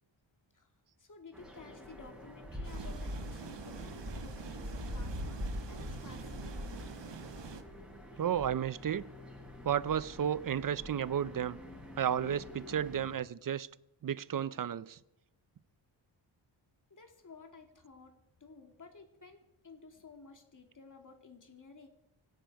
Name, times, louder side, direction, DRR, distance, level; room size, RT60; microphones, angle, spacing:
voice 1, 1.0-6.9 8.1-8.2 16.9-21.9, left 4 dB, 40° left, 2.3 m, -54 dB
sound 1, 1.3-13.1, left 1 dB, ahead, 7.4 m, -44 dB
sound 2, 2.6-7.6, right 7 dB, 60° right, 1.3 m, -47 dB
voice 2, 8.2-9.1 9.6-11.6 12.0-13.7 14.0-15.0, right 9 dB, 45° right, 0.5 m, -32 dB
25.0 x 10.5 x 4.7 m
wide cardioid pair, 145°, 48 cm